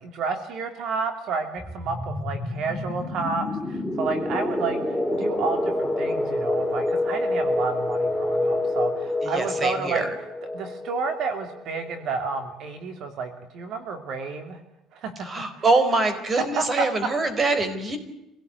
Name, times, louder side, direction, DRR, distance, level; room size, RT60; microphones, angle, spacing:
voice 1, 0.0-10.0 10.5-14.6 14.9-15.3 15.6-15.7 16.4-16.9, right 4 dB, 60° right, 7 dB, 2.8 m, -30 dB
sound 1, 1.6-12.1, left 1 dB, ahead, 2.8 m, -27 dB
voice 2, 9.2-10.1 15.2-18.0, right 3 dB, 25° right, 10 dB, 4.4 m, -24 dB
26.0 x 17.5 x 9.5 m, 0.91 s
cardioid pair, 145°, 0 cm